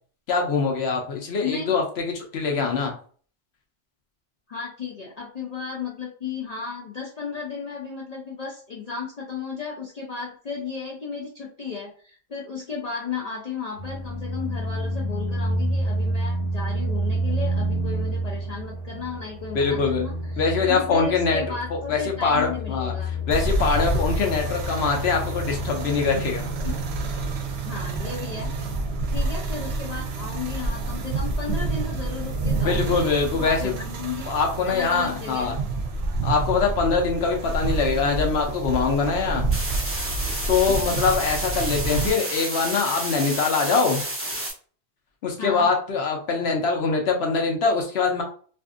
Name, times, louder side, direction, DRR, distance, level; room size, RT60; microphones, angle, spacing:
voice 1, 0.3-2.9 19.5-20.0 20.4-21.4 21.7-22.9 23.3-26.5 32.6-33.7 34.3-35.5 36.2-39.5 40.2-44.0 45.2-48.2, left 4 dB, 70° left, 2 dB, 0.9 m, -23 dB
voice 2, 1.4-1.7 4.5-23.1 26.6-26.7 27.6-28.5 29.1-33.0 33.3-34.3 34.7-35.6 40.7-41.0 45.4-45.7, left 5 dB, 55° left, -2 dB, 0.5 m, -34 dB
sound 1, 13.8-33.0, equal, 85° left, 1.2 m, -30 dB
sound 2, 23.3-42.1, right 3 dB, 70° right, 0.8 m, -28 dB
sound 3, 39.5-44.5, right 1 dB, 15° right, 0.5 m, -30 dB
2.5 x 2.4 x 2.4 m, 0.44 s
omnidirectional pair, 1.2 m